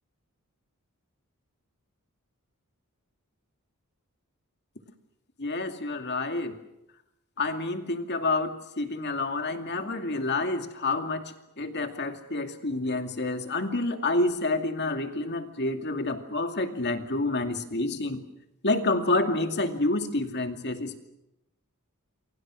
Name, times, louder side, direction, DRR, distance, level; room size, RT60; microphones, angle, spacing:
voice 1, 5.4-6.6 7.4-18.2 18.6-21.0, left 2 dB, 50° left, 6 dB, 2.5 m, -28 dB
28.5 x 23.5 x 6.4 m, 0.88 s
head